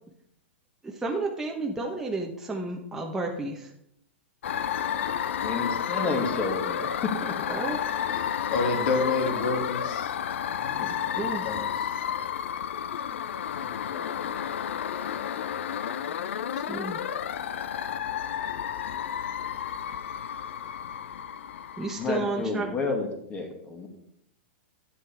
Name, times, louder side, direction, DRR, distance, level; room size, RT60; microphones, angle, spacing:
voice 1, 0.8-3.7 7.5-7.8 11.2-11.5 16.6-17.0 21.8-22.7, right 3 dB, 5° right, 0 dB, 1.0 m, -31 dB
sound 1, 4.4-22.4, left 9 dB, 80° left, 0.5 m, -31 dB
voice 2, 5.4-7.3 22.0-23.9, left 3 dB, 20° left, 3 dB, 2.0 m, -30 dB
voice 3, 8.1-10.1 10.6-12.0 13.5-13.7, left 3 dB, 55° left, 3 dB, 2.3 m, -30 dB
10.5 x 8.8 x 3.4 m, 0.74 s
hypercardioid pair, 135°, 7 cm